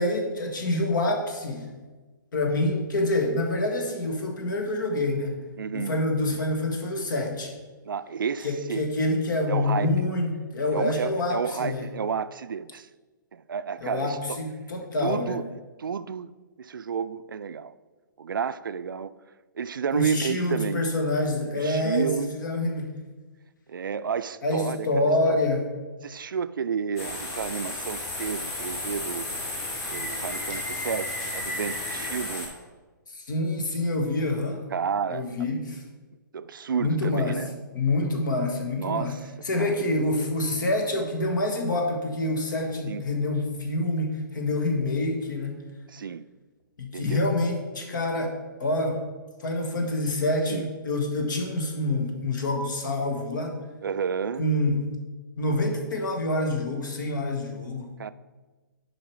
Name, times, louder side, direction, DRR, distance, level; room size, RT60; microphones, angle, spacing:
voice 1, 0.0-1.7 2.3-5.4 5.7-7.5 8.4-11.9 13.8-15.4 19.9-22.9 24.4-25.6 33.1-34.6 35.1-35.8 36.8-37.4 37.7-39.1 39.4-45.6 46.8-49.0 49.4-53.6 54.4-54.8 55.4-57.9, left 2 dB, 65° left, 1.6 m, -27 dB
voice 2, 5.6-5.9 7.8-8.9 9.5-9.9 10.7-12.9 13.3-14.4 15.0-16.3 16.6-17.7 18.2-19.1 19.5-20.8 21.5-22.3 23.7-25.4 26.0-29.4 29.9-32.5 34.7-35.6 36.3-37.5 38.8-39.3 39.6-39.9 42.8-43.1 45.9-46.2 46.9-47.2 49.8-49.9 50.5-50.7 53.8-54.5 58.0-58.1, right 6 dB, 75° right, 0.4 m, -31 dB
sound 1, 27.0-32.5, left 2 dB, 25° left, 2.1 m, -33 dB
7.2 x 5.0 x 4.7 m
figure-of-eight pair, 130°, 11 cm